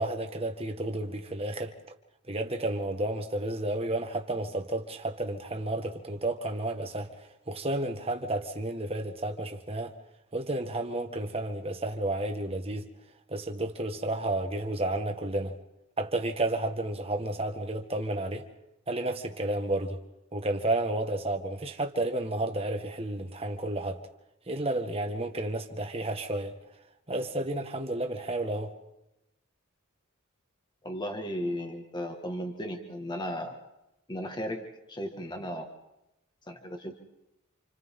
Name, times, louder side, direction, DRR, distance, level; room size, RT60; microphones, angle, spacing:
voice 1, 0.0-1.7 2.3-9.9 10.3-12.9 13.3-15.5 16.0-18.4 18.9-20.0 20.3-24.0 24.5-26.5 27.1-28.7, right 1 dB, 30° right, 1.6 m, -31 dB
voice 2, 30.8-33.5 34.1-35.7 36.5-37.0, equal, 20° left, 1.9 m, -35 dB
29.5 x 28.0 x 3.8 m
head